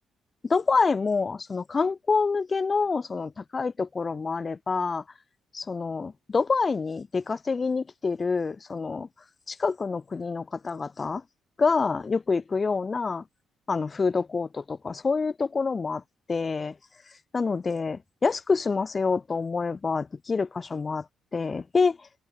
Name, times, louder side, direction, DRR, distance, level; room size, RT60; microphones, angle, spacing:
voice 1, 0.4-5.0 5.5-9.1 9.5-11.2 11.6-13.2 13.7-16.0 16.3-16.7 17.3-21.0 21.3-22.0, left 4 dB, 30° left, 0.9 m, -27 dB
cardioid pair, 90°, 0 cm